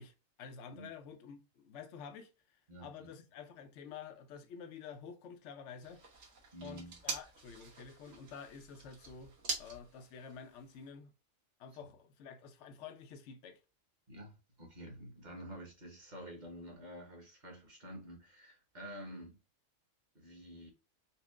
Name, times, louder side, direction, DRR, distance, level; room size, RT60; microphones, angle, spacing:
voice 1, 0.0-6.0 6.6-9.3 9.6-11.1 11.6-13.6, left 6 dB, 65° left, 0.9 m, -50 dB
voice 2, 2.7-3.1 6.5-7.0 14.1-19.4 20.1-20.7, equal, 35° right, 1.2 m, -49 dB
sound 1, 5.8-10.9, right 4 dB, 70° right, 1.5 m, -45 dB
4.3 x 2.1 x 3.5 m
omnidirectional pair, 1.4 m